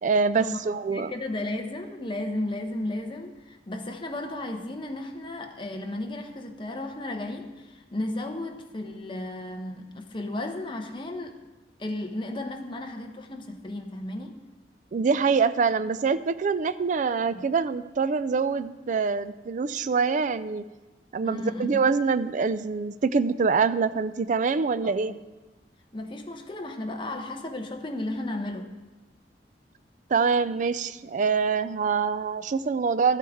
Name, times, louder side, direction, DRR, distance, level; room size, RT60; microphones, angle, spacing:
voice 1, 0.0-1.1 14.9-20.6 21.1-25.1 30.1-33.2, right 5 dB, 45° right, 14 dB, 0.4 m, -25 dB
voice 2, 0.9-11.4 11.8-14.4 17.3-17.4 21.2-21.7 24.8-25.2 25.9-28.7, left 1 dB, 30° left, 4 dB, 0.9 m, -34 dB
13.0 x 8.4 x 3.6 m, 1.1 s
head